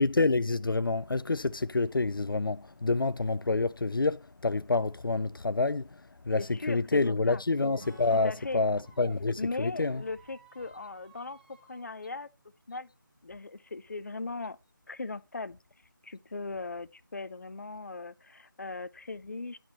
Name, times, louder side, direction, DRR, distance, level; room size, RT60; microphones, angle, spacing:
voice 1, 0.0-10.0, left 3 dB, 80° left, 0.4 m, -28 dB
voice 2, 6.4-7.4 8.2-8.6 9.4-12.3 12.7-12.9 13.2-14.6 14.9-15.6 16.0-19.6, left 3 dB, 50° left, 0.8 m, -38 dB
Squeak, 7.2-9.2 9.7-11.9, right 3 dB, 30° right, 2.3 m, -58 dB
Acoustic guitar / Strum, 7.8-13.7, right 1 dB, 70° right, 7.2 m, -59 dB
11.0 x 6.1 x 4.2 m
figure-of-eight pair, 165°, 11 cm